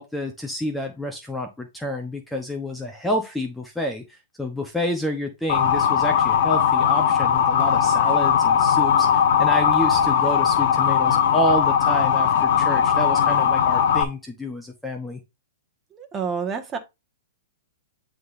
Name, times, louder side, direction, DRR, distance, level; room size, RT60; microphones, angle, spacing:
voice 1, 0.0-15.2, equal, 5° left, 1.0 m, -29 dB
Motor vehicle (road) / Siren, 5.5-14.0, left 8 dB, 60° left, 1.0 m, -19 dB
voice 2, 15.9-16.8, right 6 dB, 20° right, 1.6 m, -28 dB
11.0 x 3.7 x 2.7 m
hypercardioid pair, 130°, 0 cm